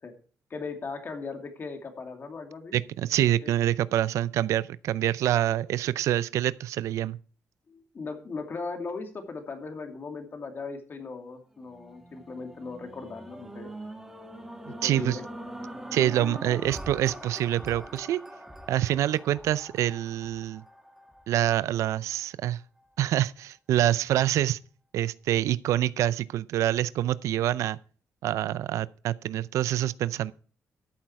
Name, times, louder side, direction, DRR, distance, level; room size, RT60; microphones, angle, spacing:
voice 1, 0.5-2.8 3.2-3.5 7.7-13.7 14.7-15.2, left 4 dB, 45° left, 2.6 m, -38 dB
voice 2, 2.7-7.2 14.7-15.2 15.9-18.2 18.7-20.6 21.3-22.6 23.0-24.6 24.9-27.8 28.2-30.3, right 12 dB, 85° right, 0.4 m, -26 dB
sound 1, 11.6-21.9 22.5-22.6, right 1 dB, 5° right, 2.0 m, -43 dB
13.5 x 7.6 x 4.6 m
cardioid pair, 90°, 5 cm